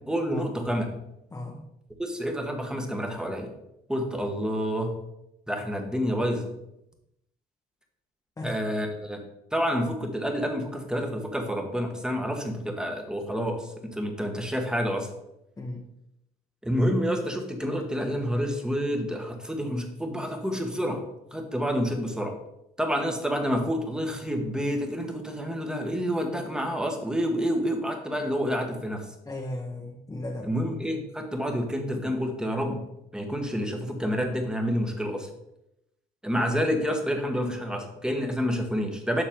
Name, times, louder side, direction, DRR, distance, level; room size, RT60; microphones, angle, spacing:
voice 1, 0.1-0.8 2.0-3.5 3.9-5.0 5.5-6.5 8.4-9.2 9.5-15.1 16.6-21.0 21.3-22.3 22.8-29.0 30.4-32.8 33.1-35.3 36.2-39.2, equal, 5° right, 4 dB, 1.2 m, -28 dB
voice 2, 1.3-1.7 8.4-8.6 15.6-15.8 29.2-30.5, left 1 dB, 20° left, -1 dB, 0.9 m, -36 dB
7.2 x 5.8 x 3.7 m, 0.84 s
cardioid pair, 110°, 17 cm